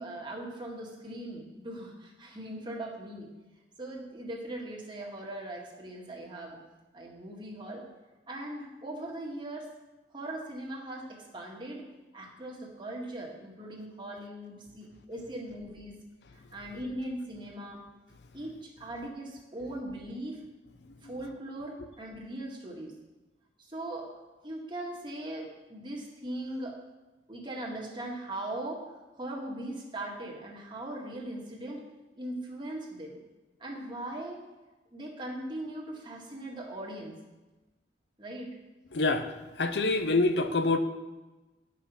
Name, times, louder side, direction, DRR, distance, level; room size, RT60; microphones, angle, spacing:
voice 1, 0.0-3.3 3.8-6.6 6.9-7.8 8.3-9.7 10.1-11.9 12.1-16.0 16.3-17.8 18.3-20.4 21.0-22.9 23.6-24.1 24.4-26.8 27.3-28.9 29.2-31.8 32.2-33.2 33.6-34.4 34.9-37.1 38.2-38.6, right 1 dB, 30° right, -1 dB, 1.8 m, -39 dB
voice 2, 38.9-39.3 39.6-40.8, left 3 dB, 75° left, 8 dB, 0.7 m, -25 dB
10.5 x 5.9 x 5.9 m, 1.1 s
head